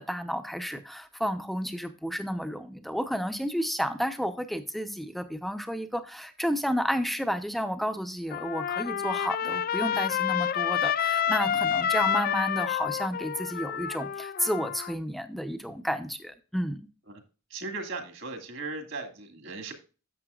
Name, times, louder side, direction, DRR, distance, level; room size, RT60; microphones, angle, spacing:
voice 1, 0.0-16.9, equal, ahead, 8 dB, 0.7 m, -31 dB
Trumpet, 8.3-14.9, left 8 dB, 40° left, 0.3 m, -28 dB
voice 2, 17.5-19.7, right 3 dB, 60° right, 5 dB, 2.0 m, -37 dB
11.0 x 7.4 x 2.4 m, 0.34 s
head